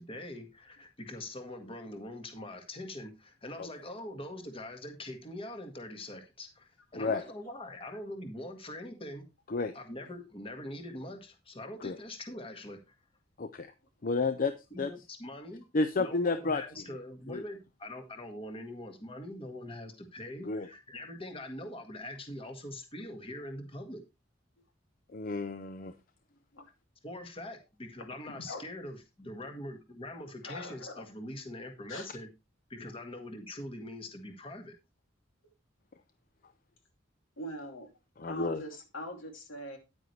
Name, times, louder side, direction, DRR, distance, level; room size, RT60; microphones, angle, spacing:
voice 1, 0.0-9.3 9.7-12.8 14.7-15.7 16.0-24.0 27.0-32.3 32.7-34.7, left 1 dB, 30° left, 1.6 m, -43 dB
voice 2, 13.4-13.7 14.0-14.5 14.8-14.9 15.7-16.6 17.3-17.4 20.4-20.7 25.1-25.9 38.2-38.6, left 3 dB, 45° left, 0.6 m, -31 dB
voice 3, 28.3-28.6 30.4-31.1 31.9-32.1 37.4-37.9 38.3-39.8, left 1 dB, 85° left, 2.6 m, -42 dB
9.7 x 8.9 x 3.2 m
head